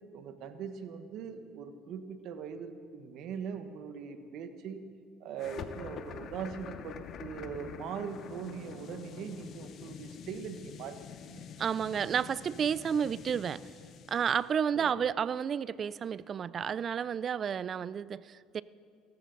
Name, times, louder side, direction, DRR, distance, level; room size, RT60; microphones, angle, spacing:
voice 1, 0.1-4.8 5.2-11.0 11.2-11.4 14.7-14.9, right 7 dB, 60° right, 9 dB, 1.1 m, -41 dB
sound 1, 5.4-14.5, left 7 dB, 50° left, 0.9 m, -46 dB
voice 2, 11.6-13.6 14.1-18.6, right 7 dB, 40° right, 19 dB, 0.4 m, -31 dB
18.5 x 14.0 x 4.0 m, 2.3 s
supercardioid pair, 100°, 0 cm